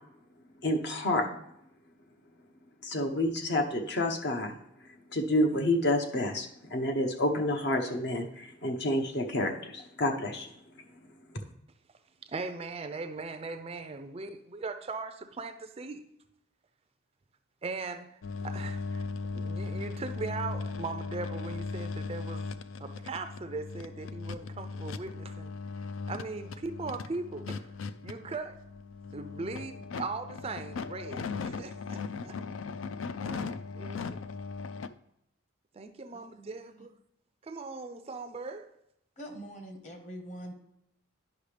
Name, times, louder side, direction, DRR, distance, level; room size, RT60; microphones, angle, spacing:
voice 1, 0.6-1.3 2.8-4.5 5.1-10.5, left 1 dB, 55° left, 4 dB, 0.8 m, -29 dB
voice 2, 12.3-16.0 17.6-18.1 18.4-19.0 19.3-22.5 22.8-25.5 26.1-27.7 28.0-28.6 29.1-32.4 33.2-34.0 35.8-36.9 37.4-38.7, right 3 dB, 30° right, 8 dB, 0.4 m, -39 dB
sound 1, 18.2-34.9, left 4 dB, 70° left, 0.4 m, -38 dB
voice 3, 36.1-36.9 39.2-40.5, equal, 35° left, 4 dB, 1.3 m, -44 dB
10.5 x 5.7 x 3.3 m, 0.79 s
head